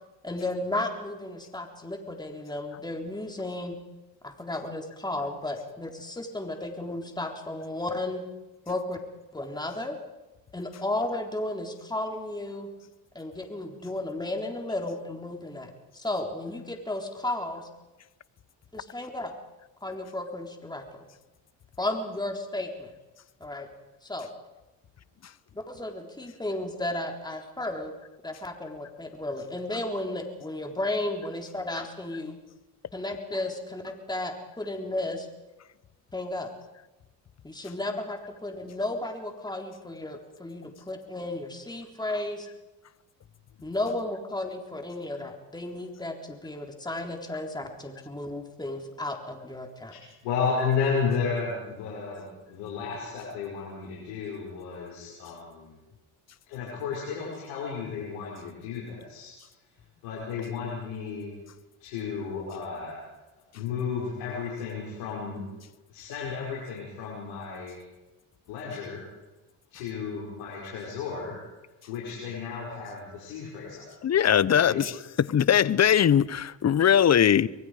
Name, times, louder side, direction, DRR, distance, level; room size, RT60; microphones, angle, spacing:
voice 1, 0.2-3.8 4.2-8.3 8.7-9.0 9.3-10.0 10.5-12.7 13.1-17.7 18.7-19.3 19.8-21.1 21.8-22.9 23.4-23.7 24.0-24.3 25.6-27.9 28.2-32.4 32.9-35.3 36.1-36.5 37.4-42.5 43.6-50.0, left 2 dB, 10° left, 3.7 m, -34 dB
voice 2, 49.9-55.8 56.5-59.3 60.0-61.3 61.8-63.0 63.5-65.4 65.9-67.8 68.5-69.0 69.7-71.4 71.9-73.9 74.5-74.8, left 5 dB, 85° left, 5.8 m, -33 dB
voice 3, 74.0-74.9 75.3-77.5, left 9 dB, 35° left, 0.9 m, -20 dB
25.0 x 22.0 x 5.0 m
supercardioid pair, 70°, 43 cm